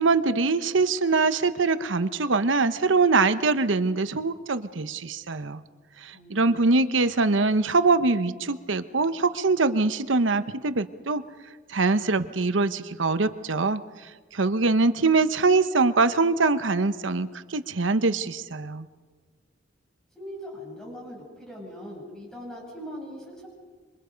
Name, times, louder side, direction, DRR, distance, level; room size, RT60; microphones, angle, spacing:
voice 1, 0.0-5.6 6.0-11.2 11.7-13.8 14.3-18.9, right 3 dB, 85° right, 12 dB, 1.0 m, -23 dB
voice 2, 6.1-6.5 7.0-7.1 20.1-23.5, equal, 5° left, -3 dB, 7.9 m, -40 dB
27.5 x 25.0 x 5.2 m, 1.4 s
head